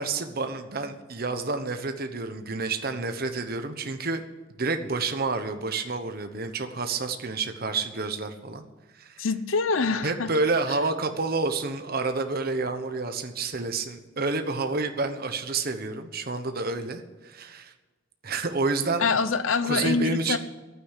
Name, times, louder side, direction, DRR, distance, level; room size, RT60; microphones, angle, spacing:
voice 1, 0.0-4.2 4.6-8.6 8.9-9.2 10.0-17.7 18.2-19.0 19.6-20.4, right 3 dB, 50° right, 7 dB, 1.1 m, -29 dB
voice 2, 9.2-10.3 19.0-20.4, left 4 dB, 85° left, 12 dB, 0.8 m, -25 dB
11.5 x 9.4 x 8.3 m, 1.2 s
head